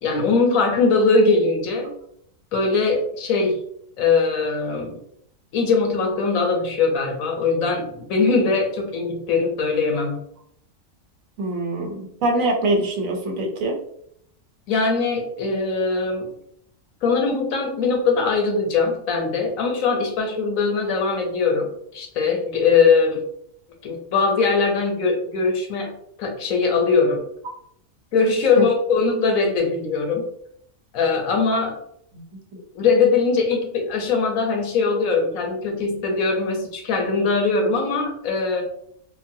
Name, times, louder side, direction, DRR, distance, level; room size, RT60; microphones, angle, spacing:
voice 1, 0.0-1.9 2.5-3.6 4.0-5.0 5.5-10.2 14.7-16.3 17.0-23.2 23.8-25.9 26.2-27.2 28.1-30.2 30.9-31.8 32.7-38.6, left 4 dB, 85° left, 2 dB, 1.2 m, -21 dB
voice 2, 11.4-13.8 28.6-28.7 32.1-32.4, right 2 dB, 80° right, 2 dB, 1.1 m, -24 dB
3.8 x 2.1 x 2.6 m, 0.69 s
omnidirectional pair, 1.4 m